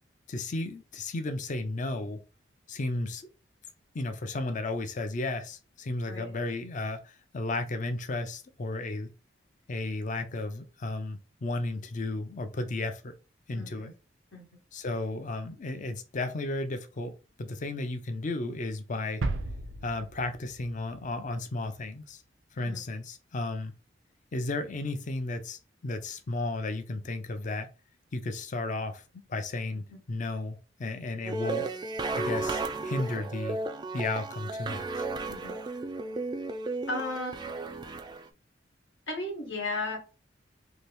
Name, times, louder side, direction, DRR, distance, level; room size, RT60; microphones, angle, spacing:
voice 1, 0.3-2.2 2.7-3.3 3.9-9.1 9.7-13.1 13.5-13.9 14.7-17.1 17.4-19.2 19.8-22.2 22.5-23.7 24.3-27.7 28.1-31.7 32.1-33.6 33.9-35.1, left 2 dB, 45° left, 0.5 m, -34 dB
voice 2, 13.5-13.9 14.3-14.5 22.6-22.8 29.9-30.0 35.3-35.6 36.9-37.6 39.1-40.0, left 2 dB, 85° left, 1.2 m, -35 dB
sound 1, 19.2-21.1 21.3-21.4, right 2 dB, 85° right, 0.5 m, -35 dB
sound 2, 31.2-38.3, right 3 dB, 25° right, 0.3 m, -34 dB
2.8 x 2.6 x 3.3 m
head